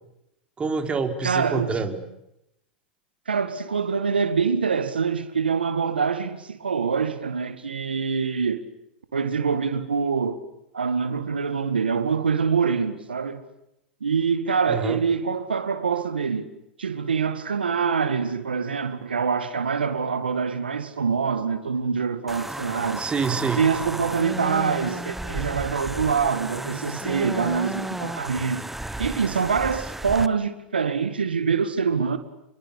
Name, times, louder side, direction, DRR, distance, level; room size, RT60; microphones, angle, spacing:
voice 1, 0.6-2.0 14.7-15.0 23.0-23.6, right 5 dB, 20° right, 4.5 m, -26 dB
voice 2, 1.2-1.9 3.3-8.6 9.1-10.4 10.7-13.4 14.0-16.5 16.8-23.1 23.6-28.6 29.0-32.2, right 6 dB, 90° right, 2.1 m, -25 dB
sound 1, 22.3-30.3, right 1 dB, 5° right, 1.3 m, -33 dB
28.5 x 23.0 x 8.5 m
hypercardioid pair, 95°, 5 cm